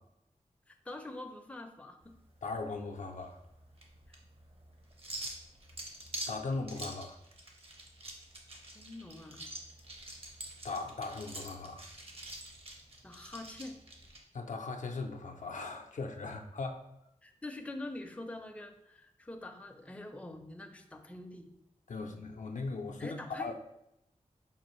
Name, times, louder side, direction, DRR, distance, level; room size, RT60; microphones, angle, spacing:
voice 1, 0.7-2.1 4.1-4.2 8.7-9.5 13.0-13.8 17.2-21.5 23.0-23.5, left 2 dB, 10° left, 4 dB, 0.4 m, -45 dB
sound 1, 2.0-14.2, right 1 dB, 45° right, 0.8 m, -46 dB
voice 2, 2.4-3.4 6.3-7.2 10.6-11.8 14.3-16.8 21.9-23.5, left 3 dB, 70° left, 4 dB, 0.4 m, -38 dB
5.3 x 2.4 x 3.0 m, 0.83 s
wide cardioid pair, 65°, 13 cm